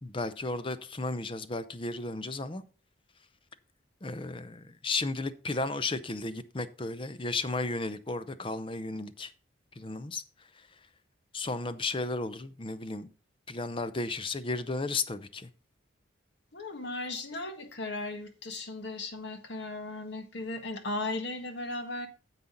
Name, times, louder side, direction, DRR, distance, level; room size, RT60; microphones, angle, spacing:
voice 1, 0.0-2.6 4.0-9.3 9.8-10.2 11.3-13.1 13.5-15.5, left 3 dB, 25° left, 0.6 m, -34 dB
voice 2, 16.5-22.1, left 2 dB, 60° left, 1.6 m, -36 dB
9.6 x 7.3 x 3.9 m
head